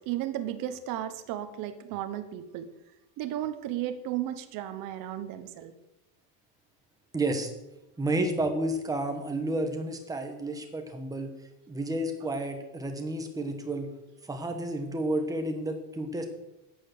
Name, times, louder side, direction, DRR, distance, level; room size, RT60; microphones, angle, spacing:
voice 1, 0.1-2.7 3.2-5.7, right 12 dB, 45° right, 10 dB, 1.2 m, -34 dB
voice 2, 7.1-7.5 8.0-11.3 11.7-13.9 14.3-16.2, right 1 dB, 10° right, 5 dB, 1.2 m, -31 dB
10.5 x 9.4 x 6.7 m, 0.93 s
cardioid pair, 180°, 46 cm